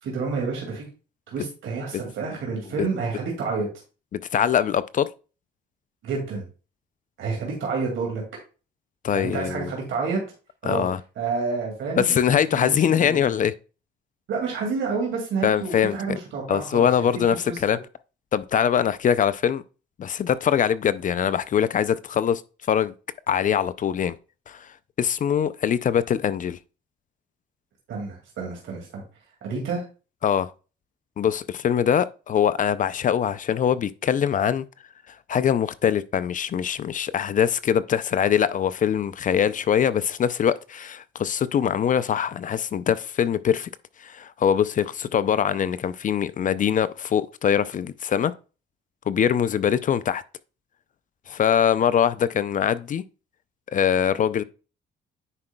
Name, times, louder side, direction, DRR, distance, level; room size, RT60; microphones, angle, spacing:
voice 1, 0.0-0.9 1.3-3.7 6.0-6.5 7.2-8.2 9.1-10.2 10.6-10.9 11.2-13.3 14.3-17.1 17.5-17.6 27.9-29.0 29.4-29.8, right 4 dB, 75° right, 2.2 m, -29 dB
voice 2, 4.1-5.1 9.0-9.7 10.7-11.0 12.0-13.5 15.4-16.2 16.5-17.8 18.3-19.6 20.0-22.4 22.7-22.9 23.3-24.2 24.5-24.7 25.0-26.6 30.2-30.5 31.2-34.6 35.3-43.7 44.0-48.3 49.1-50.2 51.3-53.0 53.7-54.4, left 8 dB, 40° left, 0.4 m, -23 dB
9.7 x 4.9 x 2.2 m
cardioid pair, 90°, 20 cm